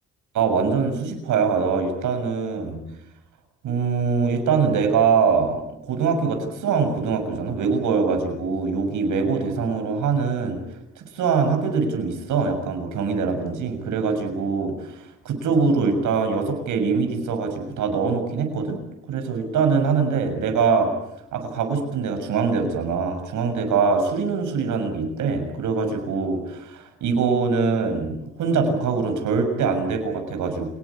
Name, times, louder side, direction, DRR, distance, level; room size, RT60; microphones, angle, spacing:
voice 1, 0.3-2.8 3.6-10.6 11.0-18.8 19.1-20.9 21.3-30.7, right 5 dB, 80° right, 5 dB, 6.7 m, -23 dB
28.5 x 20.5 x 8.6 m, 0.83 s
cardioid pair, 90°, 30 cm